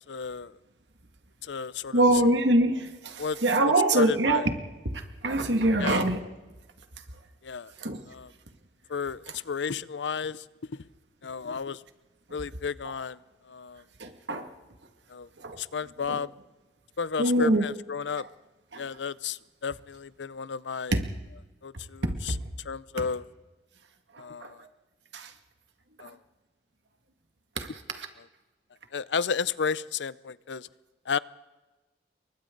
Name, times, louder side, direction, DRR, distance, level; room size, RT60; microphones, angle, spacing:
voice 1, 0.1-0.5 1.4-2.0 3.2-3.4 3.9-4.4 5.8-6.0 7.4-7.7 8.1-8.3 8.9-10.4 10.7-10.8 11.2-11.8 12.3-13.2 13.5-13.8 15.1-15.3 15.6-16.3 17.0-18.3 18.8-21.0 21.6-22.3 22.7-23.2 24.2-24.6 26.0-26.2 28.9-30.7 31.1-31.2, left 6 dB, 90° left, 18 dB, 0.6 m, -32 dB
voice 2, 1.9-4.5 4.8-6.3 7.8-8.0 12.8-12.9 14.0-14.5 15.4-15.6 16.1-16.2 17.2-17.7 18.2-18.3 18.7-18.9 20.9-21.0 24.1-24.7 25.1-25.3 26.0-26.1 27.6-28.1, right 1 dB, 90° right, 5 dB, 2.2 m, -25 dB
29.0 x 23.0 x 3.9 m, 1.2 s
head